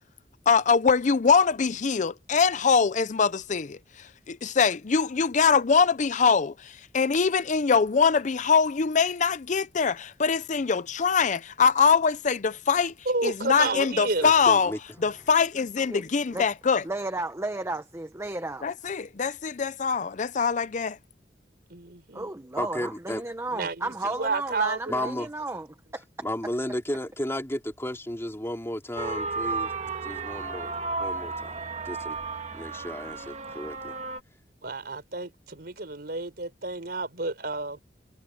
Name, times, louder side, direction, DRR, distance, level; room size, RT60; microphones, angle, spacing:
voice 1, 0.5-3.8 4.3-12.9 13.2-14.7 15.0-16.8 18.6-21.0, left 5 dB, 45° left, 0.5 m, -23 dB
voice 2, 13.1-14.3 21.7-22.3 23.5-25.1 34.6-37.8, right 3 dB, 65° right, 4.1 m, -31 dB
voice 3, 14.2-14.8 22.6-23.2 24.9-25.3 26.2-29.7 30.0-31.6 31.8-32.2 32.5-33.9, left 1 dB, 15° left, 3.4 m, -33 dB
voice 4, 16.8-18.7 22.1-25.7, right 2 dB, 15° right, 1.0 m, -33 dB
sound 1, 29.0-34.2, right 4 dB, 40° right, 1.9 m, -33 dB
head